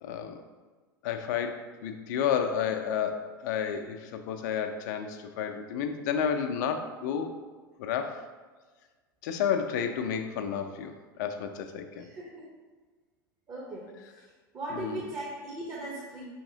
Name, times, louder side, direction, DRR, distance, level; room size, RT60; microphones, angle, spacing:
voice 1, 0.0-0.4 1.0-7.3 7.8-8.2 9.2-12.1 14.7-15.0, left 7 dB, 55° left, 7 dB, 0.4 m, -31 dB
voice 2, 12.1-12.5 13.5-13.9 14.5-16.2, right 2 dB, 30° right, -4 dB, 0.8 m, -38 dB
4.5 x 2.8 x 2.7 m, 1.4 s
figure-of-eight pair, 80°, 12 cm